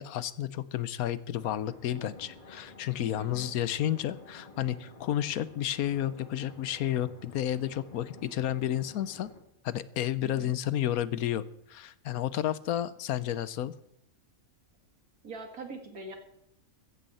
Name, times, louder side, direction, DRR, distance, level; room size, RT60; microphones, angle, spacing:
voice 1, 0.0-9.3 9.6-11.4 11.7-13.7, left 11 dB, 85° left, 16 dB, 1.2 m, -31 dB
sound 1, 1.4-9.4, left 2 dB, 35° left, 2.7 m, -51 dB
voice 2, 3.2-3.5 10.2-10.5 15.2-16.2, right 3 dB, 85° right, 4 dB, 2.5 m, -43 dB
15.5 x 14.5 x 4.2 m, 0.76 s
omnidirectional pair, 1.5 m